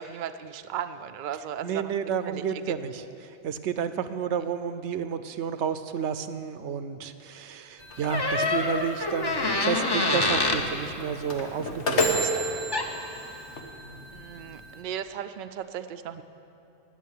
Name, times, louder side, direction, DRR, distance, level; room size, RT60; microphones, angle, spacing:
voice 1, 0.0-1.9 2.2-2.6 14.1-16.2, right 9 dB, 55° right, 9 dB, 0.6 m, -36 dB
voice 2, 1.6-12.3, right 7 dB, 80° right, 11 dB, 0.9 m, -31 dB
sound 1, 7.8-14.8, equal, 75° left, 1.6 m, -32 dB
Door, 8.1-10.7 12.4-12.5 12.7-13.1, left 2 dB, 25° left, 0.8 m, -26 dB
17.0 x 6.6 x 9.4 m, 2.8 s
omnidirectional pair, 1.2 m